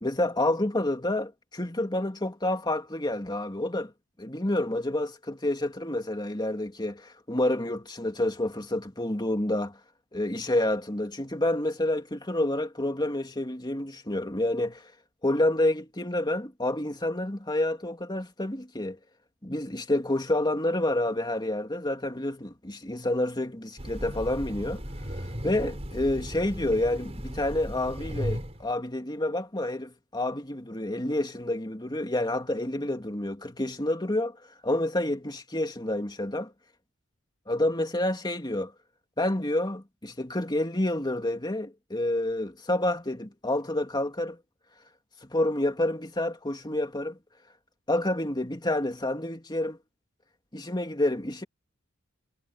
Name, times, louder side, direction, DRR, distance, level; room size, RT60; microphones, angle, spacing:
voice 1, 0.0-3.9 4.2-9.8 10.1-14.9 15.2-19.0 19.4-24.8 25.4-34.4 34.6-36.5 37.5-38.7 39.2-44.4 45.3-47.2 47.9-49.8 50.5-51.4, left 1 dB, 20° left, 2.5 m, -28 dB
Train, 23.8-28.7, equal, 30° right, 4.7 m, -36 dB
head